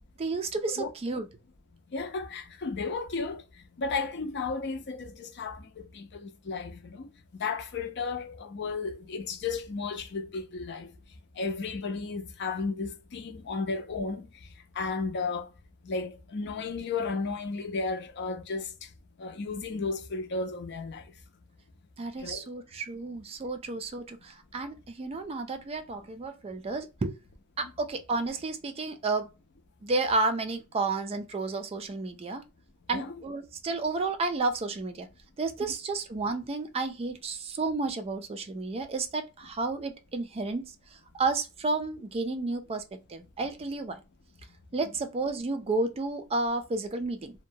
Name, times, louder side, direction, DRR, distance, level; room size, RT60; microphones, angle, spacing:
voice 1, 0.2-1.2 22.0-27.2 27.6-29.3 29.8-32.4 32.9-35.1 35.4-44.0 44.7-47.3, right 3 dB, 30° right, 0.3 m, -31 dB
voice 2, 1.9-3.4 3.8-7.1 7.4-10.9 11.4-14.3 14.8-15.5 15.8-18.7 19.2-21.0 22.2-22.4 27.6-27.7 32.9-33.1, left 4 dB, 55° left, 0.5 m, -33 dB
2.6 x 2.1 x 2.7 m
head